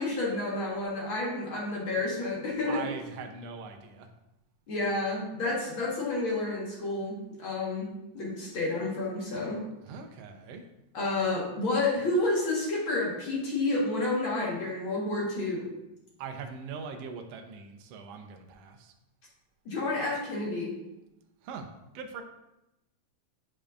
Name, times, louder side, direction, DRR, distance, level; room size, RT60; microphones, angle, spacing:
voice 1, 0.0-2.9 4.7-7.9 8.1-9.6 10.9-15.7 19.7-20.8, left 2 dB, 50° left, -4 dB, 2.0 m, -30 dB
voice 2, 2.7-4.1 9.8-10.6 16.2-18.9 21.4-21.7 21.9-22.2, right 5 dB, 75° right, 4 dB, 1.6 m, -41 dB
9.7 x 5.1 x 2.5 m, 0.91 s
omnidirectional pair, 3.4 m